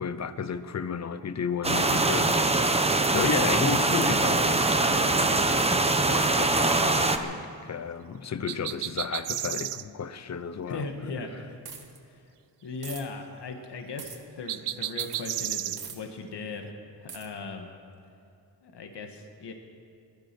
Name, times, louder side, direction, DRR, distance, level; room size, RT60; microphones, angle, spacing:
voice 1, 0.0-5.5 5.7-10.9, left 6 dB, 40° left, 13 dB, 0.7 m, -33 dB
sound 1, 1.6-7.2, right 2 dB, 15° right, 0.8 m, -23 dB
sound 2, 8.5-9.8 14.5-15.8, right 12 dB, 80° right, 0.6 m, -32 dB
voice 2, 10.7-11.3 11.7-11.9 12.6-16.7 17.0-17.7 18.6-19.5, left 4 dB, 75° left, 4 dB, 1.7 m, -38 dB
sound 3, 11.6-12.0 12.8-13.0 14.0-14.2 15.0-15.2 15.8-16.0 17.1-17.3, right 6 dB, 60° right, 1.7 m, -41 dB
20.0 x 12.0 x 6.1 m, 2.6 s
wide cardioid pair, 130°, 41 cm